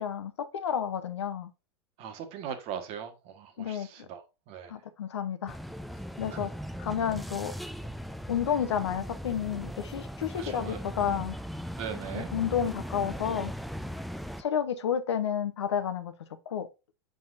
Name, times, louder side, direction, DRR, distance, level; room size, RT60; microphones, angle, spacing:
voice 1, 0.0-1.5 3.6-4.1 4.7-5.6 6.2-6.5 6.8-7.6 8.3-11.4 12.1-13.5 14.4-16.1 16.5-16.7, left 8 dB, 80° left, 0.9 m, -31 dB
voice 2, 2.0-4.8 6.3-6.5 10.3-10.8 11.8-12.3, right 8 dB, 45° right, 1.4 m, -40 dB
sound 1, 5.5-14.4, equal, ahead, 0.4 m, -39 dB
7.6 x 5.5 x 2.6 m
hypercardioid pair, 100°, 14 cm